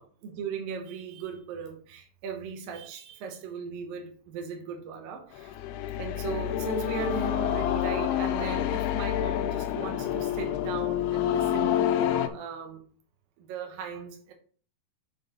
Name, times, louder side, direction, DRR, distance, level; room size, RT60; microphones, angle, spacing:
voice 1, 0.0-5.6 6.0-12.8 13.4-14.3, right 6 dB, 70° right, 2.7 m, -37 dB
sound 1, 5.3-12.3, left 12 dB, 90° left, 2.7 m, -28 dB
7.4 x 4.0 x 5.4 m
omnidirectional pair, 4.5 m